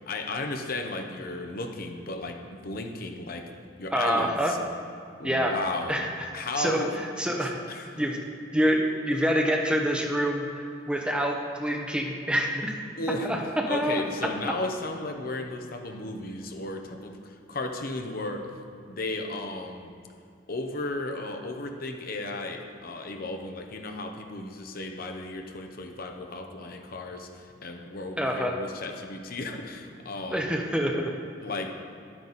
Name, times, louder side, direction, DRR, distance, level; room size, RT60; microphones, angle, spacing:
voice 1, 0.1-3.4 3.8-4.6 5.2-6.0 6.3-6.9 7.7-8.0 13.0-18.5 18.9-19.9 20.5-30.5 31.4-31.7, left 2 dB, 55° left, 4 dB, 0.9 m, -34 dB
voice 2, 3.9-4.5 5.2-5.5 5.9-6.1 6.6-7.6 8.0-8.2 8.5-12.7 13.2-14.0 28.2-28.5 30.3-31.1, equal, 5° right, 1 dB, 0.8 m, -26 dB
11.0 x 9.0 x 4.1 m, 2.5 s
head